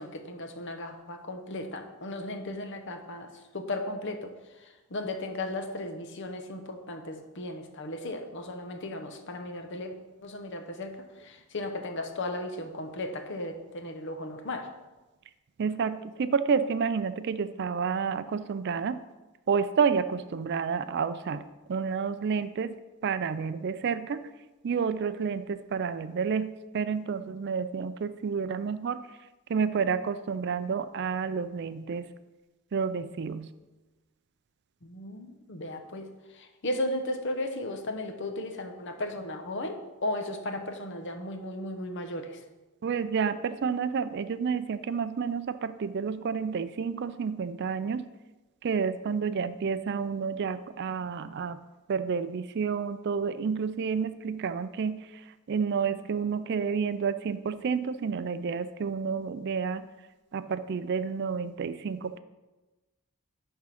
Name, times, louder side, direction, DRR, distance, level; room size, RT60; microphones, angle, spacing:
voice 1, 0.0-4.4 4.9-9.9 10.2-14.7 34.8-36.1 36.3-42.4, left 1 dB, 55° left, 6 dB, 0.9 m, -35 dB
voice 2, 15.6-19.0 19.5-21.4 21.7-22.7 23.0-24.3 24.6-29.2 29.5-32.1 32.7-33.5 42.8-48.1 48.6-51.6 51.9-59.9 60.3-62.2, right 6 dB, 50° right, 12 dB, 0.4 m, -30 dB
11.0 x 3.7 x 5.8 m, 1.1 s
head